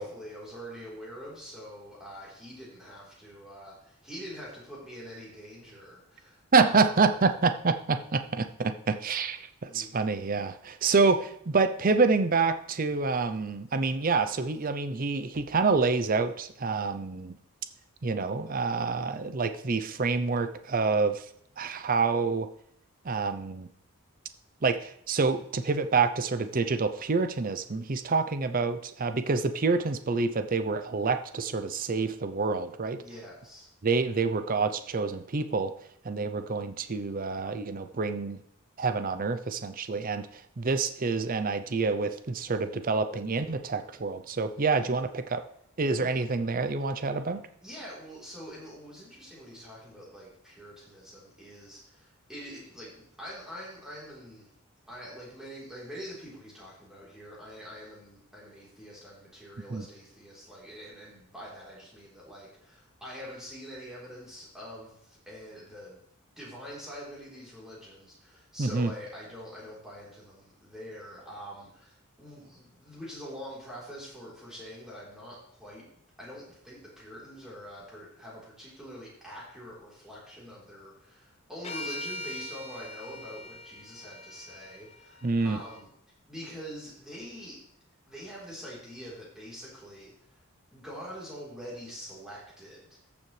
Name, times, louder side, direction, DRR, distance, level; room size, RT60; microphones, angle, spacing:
voice 1, 0.0-6.9 9.7-10.2 33.0-33.7 44.7-45.0 46.0-46.2 47.6-54.5 54.9-66.0 66.4-75.9 76.2-85.9 86.3-87.6 88.1-90.4 90.7-93.1, equal, 5° right, -7 dB, 3.7 m, -45 dB
voice 2, 6.5-17.4 18.0-21.3 21.6-22.5 23.0-23.7 24.6-33.0 33.8-35.7 36.0-38.4 38.8-45.4 45.8-47.4 59.7-59.9 68.6-68.9 85.2-85.6, right 4 dB, 40° right, 10 dB, 0.6 m, -27 dB
sound 1, 81.6-85.8, left 1 dB, 30° left, 0.6 m, -42 dB
14.0 x 7.1 x 3.3 m, 0.69 s
head